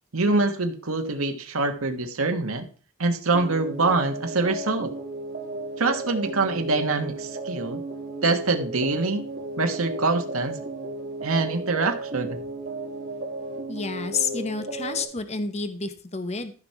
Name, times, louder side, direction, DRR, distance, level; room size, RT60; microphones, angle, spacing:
voice 1, 0.1-2.7 3.0-4.9 5.8-7.8 8.2-9.2 9.6-10.6 11.2-12.4, right 3 dB, 80° right, 5 dB, 1.5 m, -24 dB
sound 1, 3.3-15.0, right 2 dB, 50° right, 2.5 m, -34 dB
voice 2, 13.7-16.5, left 4 dB, 30° left, 9 dB, 0.8 m, -29 dB
14.0 x 5.9 x 4.7 m, 0.40 s
head